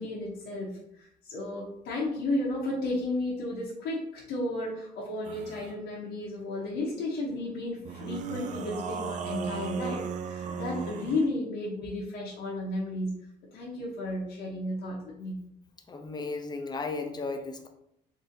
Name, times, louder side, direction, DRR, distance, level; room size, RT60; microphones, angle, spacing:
voice 1, 0.0-13.1 13.5-15.4, left 2 dB, 80° left, -5 dB, 0.9 m, -33 dB
sound 1, 5.2-5.7 7.9-11.3, right 6 dB, 45° right, 0.4 m, -36 dB
voice 2, 15.9-17.7, left 3 dB, 25° left, 4 dB, 0.6 m, -35 dB
3.9 x 2.7 x 2.6 m, 0.74 s
cardioid pair, 110°, 17 cm